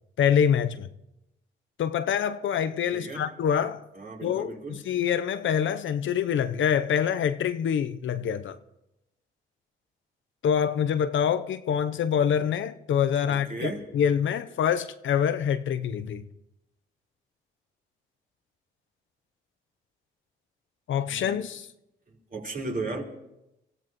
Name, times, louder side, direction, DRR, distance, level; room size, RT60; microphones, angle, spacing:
voice 1, 0.2-0.9 1.8-3.9 4.2-8.6 10.4-16.2 20.9-21.7, left 8 dB, 65° left, 0.8 m, -25 dB
voice 2, 2.9-3.2 4.0-4.8 13.3-13.8 21.1-21.4 22.1-23.0, right 3 dB, 40° right, 4.3 m, -35 dB
24.5 x 15.5 x 3.1 m
supercardioid pair, 55°, 21 cm